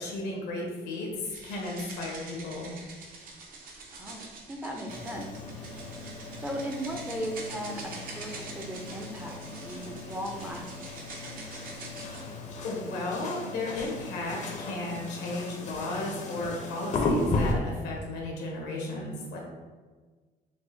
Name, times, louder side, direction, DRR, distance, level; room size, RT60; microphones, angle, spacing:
voice 1, 0.0-2.7 11.7-12.0 12.6-19.4, left 2 dB, 85° left, -1 dB, 1.0 m, -34 dB
sound 1, 1.2-12.3, right 3 dB, 55° right, 0.7 m, -45 dB
voice 2, 4.0-5.3 5.7-6.1 6.4-11.0, equal, 10° right, 1 dB, 0.4 m, -37 dB
sound 2, 4.9-17.5, left 2 dB, 45° left, 0.6 m, -35 dB
4.8 x 2.2 x 2.6 m, 1.4 s
cardioid pair, 110°, 17 cm